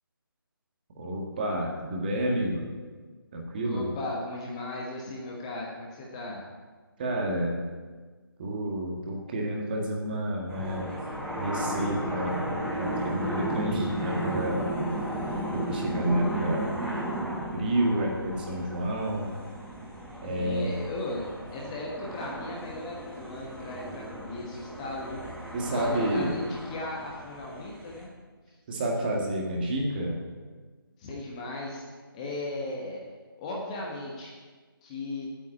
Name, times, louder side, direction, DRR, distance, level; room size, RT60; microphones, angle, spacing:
voice 1, 1.0-2.7 3.3-3.9 7.0-7.6 8.4-10.9 11.4-12.4 12.7-14.7 15.5-16.7 17.5-19.3 20.2-20.7 25.5-26.4 28.7-30.2, right 1 dB, 25° right, -1 dB, 1.7 m, -29 dB
voice 2, 3.6-6.5 20.2-28.1 28.5-28.6 31.0-31.8 32.1-33.0 33.4-34.3 34.8-35.3, left 2 dB, 15° left, -2 dB, 1.2 m, -37 dB
sound 1, 10.5-28.0, right 1 dB, 5° right, 1.8 m, -34 dB
8.7 x 8.4 x 8.7 m, 1.4 s
figure-of-eight pair, 155°, 12 cm